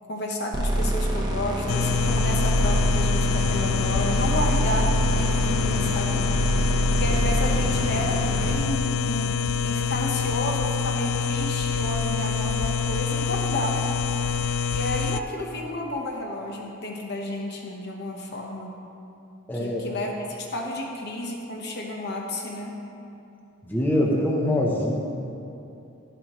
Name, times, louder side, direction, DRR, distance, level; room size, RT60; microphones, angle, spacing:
voice 1, 0.0-6.2 7.0-14.0 14.7-18.8 19.5-22.8, left 1 dB, 45° left, 0 dB, 1.0 m, -31 dB
sound 1, 0.5-8.5, right 1 dB, 20° right, 0.9 m, -25 dB
sound 2, 1.7-15.2, left 6 dB, 65° left, 0.3 m, -26 dB
voice 2, 19.5-19.8 23.6-25.0, left 1 dB, 10° left, -3 dB, 0.8 m, -23 dB
12.0 x 10.5 x 3.1 m, 2.7 s
head